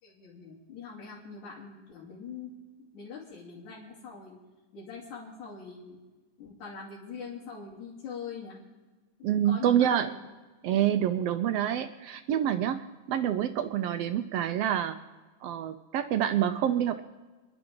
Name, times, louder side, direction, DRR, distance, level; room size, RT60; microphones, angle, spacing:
voice 1, 0.0-2.5 2.9-4.4 4.7-6.0 6.4-8.6 9.3-10.2, left 5 dB, 80° left, -8 dB, 4.2 m, -43 dB
voice 2, 9.2-10.1 10.6-15.0 15.4-17.0, right 10 dB, 80° right, 9 dB, 1.4 m, -27 dB
27.5 x 11.5 x 3.8 m, 1.3 s
omnidirectional pair, 3.4 m